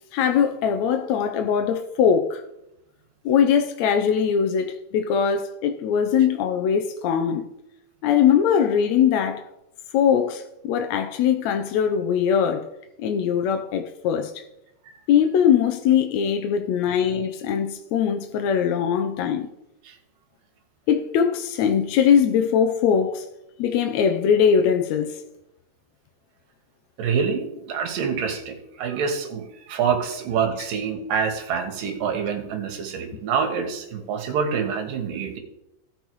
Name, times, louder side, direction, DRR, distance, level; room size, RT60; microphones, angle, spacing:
voice 1, 0.1-2.4 3.2-7.5 8.0-9.5 9.9-12.7 13.0-14.3 15.1-19.5 20.9-23.2 23.6-25.2, left 8 dB, 75° left, 1.7 m, -21 dB
voice 2, 27.0-35.4, right 6 dB, 80° right, 3.0 m, -26 dB
16.5 x 5.6 x 4.6 m
omnidirectional pair, 3.8 m